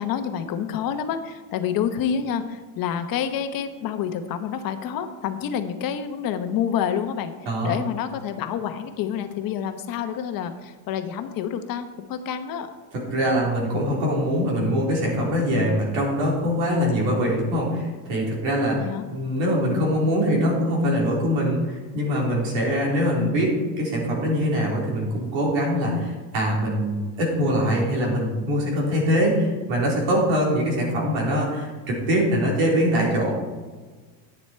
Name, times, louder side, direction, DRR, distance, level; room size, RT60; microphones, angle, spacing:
voice 1, 0.0-12.7 18.7-19.1 29.4-29.6, left 8 dB, 45° left, 8 dB, 1.0 m, -28 dB
voice 2, 7.5-7.8 12.9-18.8 19.1-33.3, equal, 70° right, -3 dB, 4.0 m, -23 dB
10.5 x 9.1 x 4.5 m, 1.4 s
cardioid pair, 155°, 48 cm